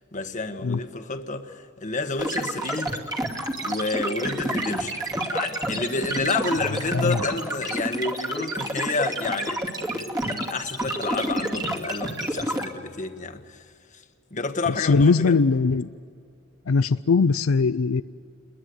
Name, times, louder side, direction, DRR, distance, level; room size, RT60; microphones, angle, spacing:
voice 1, 0.1-2.9 3.6-5.0 5.3-9.6 9.9-13.6 13.9-14.0 14.3-15.4, left 3 dB, 40° left, 1.5 m, -30 dB
sound 1, 2.2-12.6, right 1 dB, 20° right, 2.5 m, -29 dB
voice 2, 14.8-15.9 16.7-18.0, left 4 dB, 85° left, 0.5 m, -20 dB
29.5 x 22.0 x 7.9 m
head